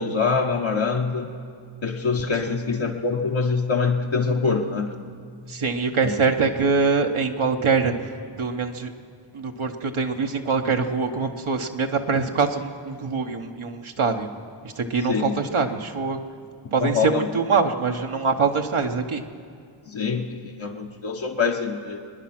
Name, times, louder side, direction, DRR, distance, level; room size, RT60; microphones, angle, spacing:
voice 1, 0.0-1.4 1.8-4.9 6.0-6.1 15.0-15.3 16.8-17.3 19.9-22.0, left 4 dB, 65° left, 0 dB, 1.1 m, -24 dB
voice 2, 5.5-8.0 8.4-8.9 9.3-14.3 14.6-16.2 16.7-19.2, right 4 dB, 75° right, 3 dB, 1.0 m, -24 dB
24.0 x 10.0 x 5.9 m, 2.3 s
wide cardioid pair, 50°, 49 cm